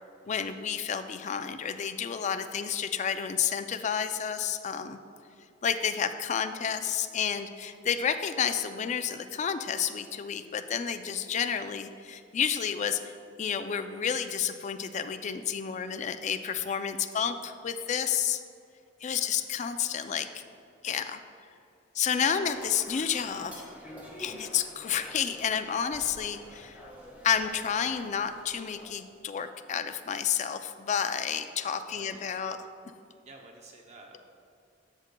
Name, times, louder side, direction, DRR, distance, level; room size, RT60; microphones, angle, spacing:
voice 1, 0.3-5.0 5.6-18.4 19.0-20.4 20.8-21.2 21.9-23.5 24.2-26.8 27.2-32.6, left 7 dB, 40° left, 9 dB, 0.3 m, -30 dB
voice 2, 15.7-16.2 19.0-19.4 20.0-20.1 22.4-22.5 24.1-24.4 31.8-32.4 33.3-34.2, right 2 dB, 35° right, 1 dB, 0.5 m, -53 dB
sound 1, 22.3-28.9, equal, 10° right, 1.4 m, -48 dB
13.0 x 6.5 x 2.2 m, 2.5 s
head